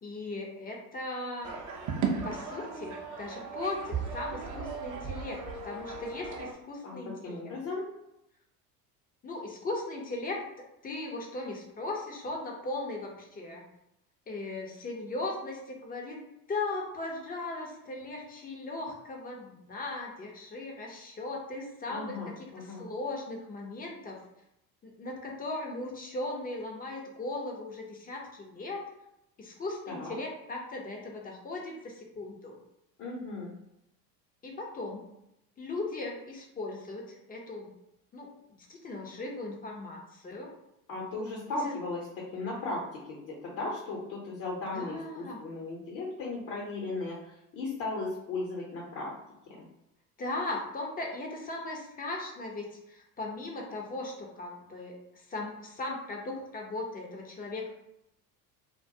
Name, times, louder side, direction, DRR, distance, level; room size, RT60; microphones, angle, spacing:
voice 1, 0.0-1.5 2.2-7.5 9.2-10.4 10.8-13.6 14.3-16.2 16.5-24.2 24.8-28.8 29.4-32.6 34.4-35.0 35.6-37.7 38.1-38.3 38.7-40.5 41.6-41.8 44.7-45.4 50.2-57.7, left 2 dB, 20° left, 0 dB, 0.5 m, -38 dB
sound 1, 1.4-6.5, right 5 dB, 40° right, 0.5 m, -36 dB
voice 2, 7.2-7.9 21.9-22.9 29.9-30.2 33.0-33.5 40.9-49.1 49.5-49.7, left 2 dB, 55° left, -3 dB, 0.8 m, -36 dB
2.2 x 2.1 x 2.6 m, 0.85 s
hypercardioid pair, 70°, 49 cm